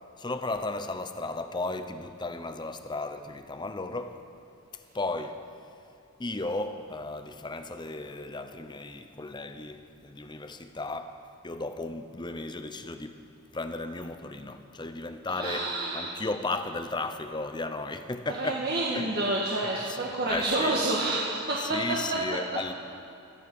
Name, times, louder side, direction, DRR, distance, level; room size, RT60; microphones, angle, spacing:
voice 1, 0.2-4.2 4.9-5.4 6.2-11.2 11.4-13.2 13.5-18.7 18.9-19.1 19.9-20.0 20.3-20.8 21.6-22.7, left 2 dB, 20° left, 0.7 m, -35 dB
voice 2, 15.4-16.1 18.3-22.2, right 2 dB, 45° right, 1.5 m, -29 dB
18.0 x 14.0 x 5.4 m
head